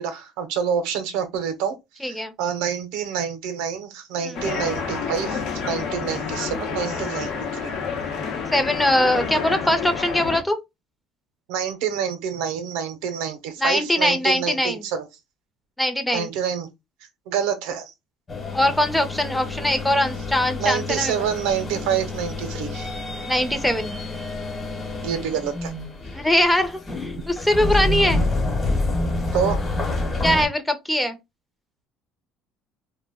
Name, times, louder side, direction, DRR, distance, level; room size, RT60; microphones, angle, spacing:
voice 1, 0.0-7.7 11.5-15.1 16.1-16.7 17.3-17.9 20.6-22.9 25.0-25.7 29.3-29.6, right 7 dB, 85° right, 0.6 m, -27 dB
voice 2, 2.0-2.3 4.2-4.4 8.5-10.6 13.6-14.8 15.8-16.3 18.5-21.1 23.3-24.0 26.1-28.2 30.2-31.2, left 1 dB, 5° left, 0.6 m, -22 dB
sound 1, 4.3-10.4, left 5 dB, 70° left, 0.8 m, -29 dB
sound 2, 18.3-30.5, left 2 dB, 25° left, 1.1 m, -28 dB
2.2 x 2.1 x 3.4 m
cardioid pair, 105°, 0 cm